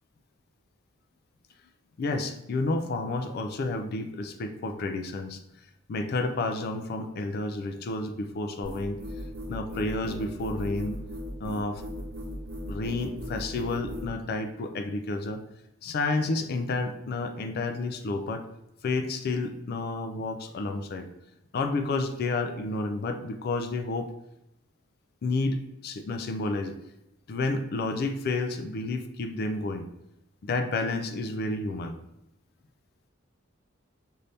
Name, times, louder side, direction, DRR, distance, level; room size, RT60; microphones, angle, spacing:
voice 1, 2.0-5.4 5.9-9.0 9.5-11.0 11.4-11.8 12.7-15.4 15.8-18.4 18.8-21.1 21.5-24.1 25.2-26.7 27.3-29.9 30.4-32.0, left 3 dB, 50° left, 7 dB, 0.4 m, -30 dB
sound 1, 8.6-14.1, left 1 dB, 50° right, 0.9 m, -37 dB
5.4 x 2.6 x 3.3 m, 0.85 s
head